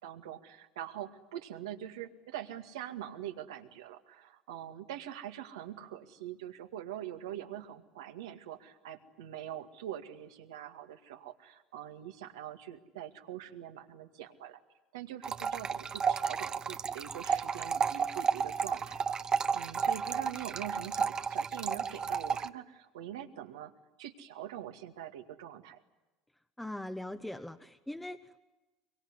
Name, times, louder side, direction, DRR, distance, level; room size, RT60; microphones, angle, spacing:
voice 1, 0.0-14.6 14.9-19.2 19.5-23.7 24.0-25.8, right 11 dB, 85° right, 5 dB, 2.1 m, -44 dB
sound 1, 15.2-22.5, right 6 dB, 30° right, 1.0 m, -32 dB
voice 2, 26.6-28.4, left 1 dB, 5° left, 7 dB, 1.2 m, -41 dB
23.5 x 23.5 x 9.8 m, 1.1 s
hypercardioid pair, 85°, 2 cm